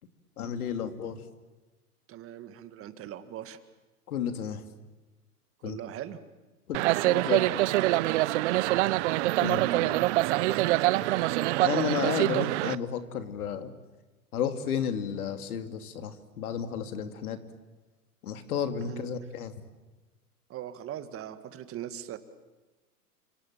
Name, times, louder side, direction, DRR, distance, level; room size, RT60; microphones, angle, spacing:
voice 1, 0.4-1.2 4.1-4.6 5.6-5.8 6.7-7.6 9.4-9.9 11.6-13.7 14.3-17.4 18.2-19.5, left 8 dB, 70° left, 8 dB, 2.8 m, -32 dB
voice 2, 2.1-3.6 5.6-6.2 8.5-9.0 9.5-10.8 18.8-19.1 20.5-22.2, right 11 dB, 30° right, 11 dB, 1.9 m, -41 dB
sound 1, 6.7-12.8, right 17 dB, 50° right, 0.8 m, -25 dB
29.5 x 26.5 x 7.5 m, 1.2 s
hypercardioid pair, 115°, 46 cm